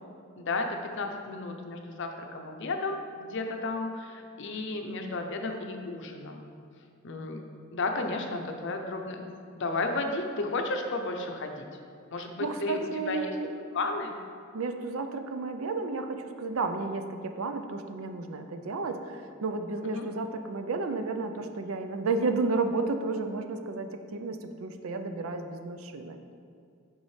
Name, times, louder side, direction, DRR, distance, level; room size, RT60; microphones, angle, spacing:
voice 1, 0.4-6.5 7.0-7.4 7.7-11.7 12.1-13.3 13.7-14.1 19.8-20.1, left 2 dB, 60° left, 4 dB, 0.6 m, -33 dB
voice 2, 12.2-13.5 14.5-26.2, right 3 dB, 80° right, 7 dB, 0.5 m, -32 dB
7.1 x 5.4 x 3.2 m, 2.4 s
head